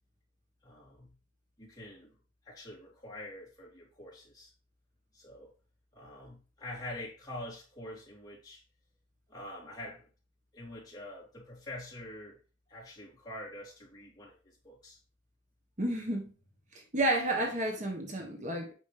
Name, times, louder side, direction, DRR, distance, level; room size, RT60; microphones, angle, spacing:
voice 1, 0.6-1.1 1.6-2.1 2.4-4.5 5.1-5.5 5.9-8.6 9.3-10.1 10.5-12.4 12.7-15.0, left 1 dB, 20° left, 3.6 m, -45 dB
voice 2, 15.8-16.3 16.7-18.7, right 1 dB, 40° right, 1.3 m, -31 dB
8.5 x 6.2 x 3.4 m
head